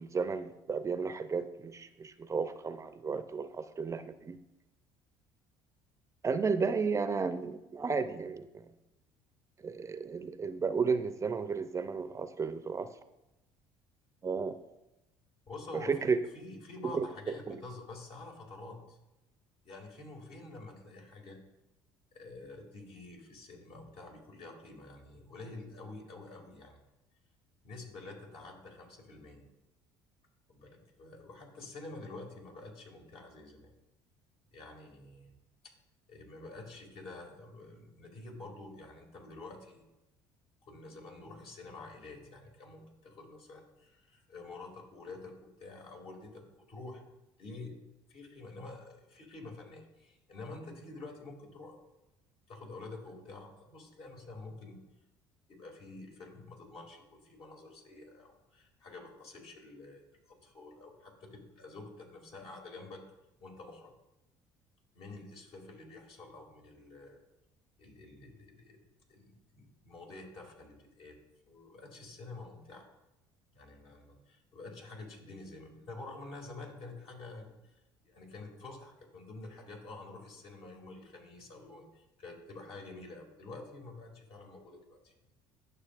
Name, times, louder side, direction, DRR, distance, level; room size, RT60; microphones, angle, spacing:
voice 1, 0.0-4.4 6.2-8.7 9.6-12.9 14.2-14.5 15.7-16.2 16.8-17.1 17.5-17.6, right 5 dB, 30° right, 11 dB, 0.5 m, -33 dB
voice 2, 15.5-19.0 19.6-21.4 22.1-26.8 27.6-29.4 30.5-33.7 34.5-35.3 36.1-39.8 40.6-47.0 47.4-47.7 48.1-51.8 52.5-54.8 55.5-63.0 63.4-63.9 64.9-67.2 67.8-68.8 69.1-71.2 71.5-72.9 73.5-77.5 78.0-85.1, left 2 dB, 60° left, 0 dB, 2.4 m, -48 dB
11.5 x 6.3 x 2.5 m, 0.95 s
supercardioid pair, 75°, 11 cm